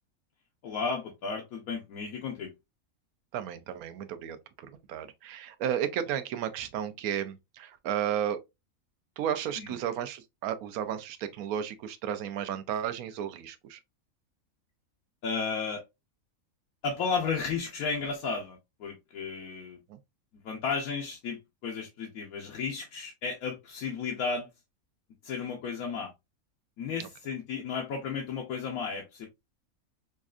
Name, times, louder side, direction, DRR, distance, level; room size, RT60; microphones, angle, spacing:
voice 1, 0.6-2.5 9.6-9.7 15.2-15.8 16.8-19.8 20.4-24.5 25.2-26.1 26.8-29.3, left 5 dB, 85° left, 1.3 m, -33 dB
voice 2, 3.3-4.4 4.9-8.4 9.2-13.8 19.9-20.0, right 9 dB, 85° right, 1.1 m, -33 dB
5.2 x 2.4 x 2.3 m
omnidirectional pair, 1.5 m